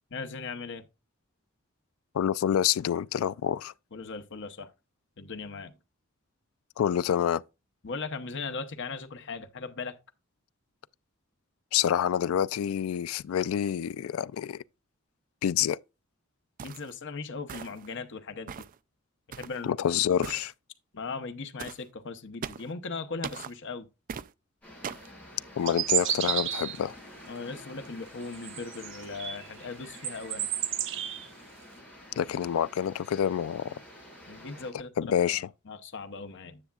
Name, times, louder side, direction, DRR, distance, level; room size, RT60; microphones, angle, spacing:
voice 1, 0.1-0.9 3.9-4.7 5.2-5.7 7.8-10.0 16.6-18.6 19.3-19.7 20.9-23.9 27.3-30.5 34.3-36.6, left 4 dB, 60° left, 0.9 m, -38 dB
voice 2, 2.1-3.7 6.8-7.4 11.7-14.6 15.4-15.8 19.6-20.5 25.6-27.0 32.2-33.8 35.0-35.5, left 9 dB, 80° left, 0.3 m, -27 dB
sound 1, 16.6-16.9 17.5-17.9 18.5-18.8 19.3-19.6 20.2-20.5 21.6-21.8 22.4-22.7 23.2-23.5 24.1-24.3 24.8-25.1, right 7 dB, 40° right, 0.3 m, -39 dB
sound 2, 24.6-34.7, left 1 dB, 10° left, 5.4 m, -49 dB
sound 3, 25.7-26.9 28.3-29.5 29.8-31.3, right 11 dB, 65° right, 0.9 m, -31 dB
9.8 x 7.0 x 2.4 m
head